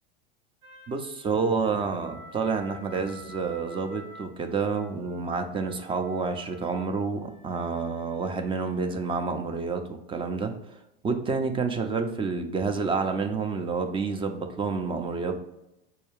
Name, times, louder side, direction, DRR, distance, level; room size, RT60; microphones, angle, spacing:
sound 1, 0.6-9.2, equal, 70° right, 1.0 m, -50 dB
voice 1, 0.9-9.8 10.1-10.5 11.0-15.4, right 4 dB, 20° right, 6 dB, 0.4 m, -29 dB
4.5 x 2.3 x 3.3 m, 0.88 s
hypercardioid pair, 90°, 29 cm